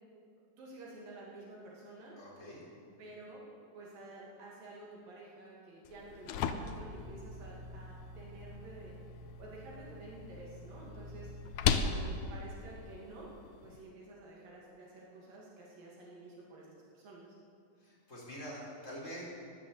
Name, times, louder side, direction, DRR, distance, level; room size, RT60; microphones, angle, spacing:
voice 1, 0.6-2.1 3.0-3.5 3.8-9.0 9.4-13.3 13.6-17.4, right 2 dB, 80° right, -4 dB, 4.2 m, -51 dB
voice 2, 2.2-2.6 17.8-19.2, equal, 20° left, -6 dB, 4.3 m, -45 dB
sound 1, 5.8-13.8, left 6 dB, 75° left, 1.9 m, -38 dB
15.0 x 11.0 x 8.2 m, 2.5 s
omnidirectional pair, 3.9 m